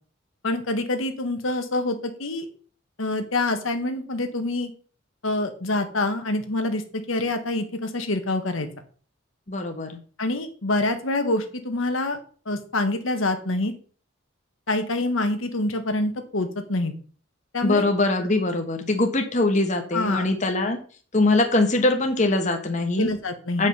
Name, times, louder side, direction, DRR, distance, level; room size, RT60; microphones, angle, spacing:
voice 1, 0.4-2.5 3.0-4.7 5.2-8.7 10.2-12.2 12.4-13.7 14.7-16.9 17.5-17.8 19.9-20.3 23.0-23.7, left 2 dB, 85° left, 6 dB, 1.4 m, -26 dB
voice 2, 9.5-10.0 17.6-20.8 21.1-23.1 23.6-23.7, left 2 dB, 35° left, 4 dB, 1.2 m, -22 dB
8.5 x 5.3 x 5.5 m, 0.42 s
head